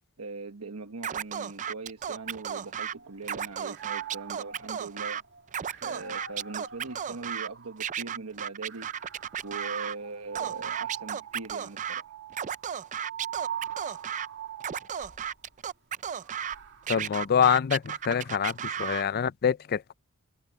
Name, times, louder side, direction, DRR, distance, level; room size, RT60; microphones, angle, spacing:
voice 1, 0.2-5.2 5.8-9.1 9.4-12.1, right 3 dB, 80° right, 1.2 m, -41 dB
Scratching (performance technique), 1.0-2.9 3.2-5.2 5.5-7.5 7.8-10.0 10.4-12.0 12.3-14.3 14.6-16.6 16.9-19.0, right 8 dB, 35° right, 0.4 m, -34 dB
sound 1, 2.0-3.2 3.6-8.0 8.7-15.3 16.1-18.7, right 9 dB, 55° right, 2.4 m, -43 dB
voice 2, 16.9-18.5 18.8-19.9, left 7 dB, 45° left, 0.4 m, -25 dB
head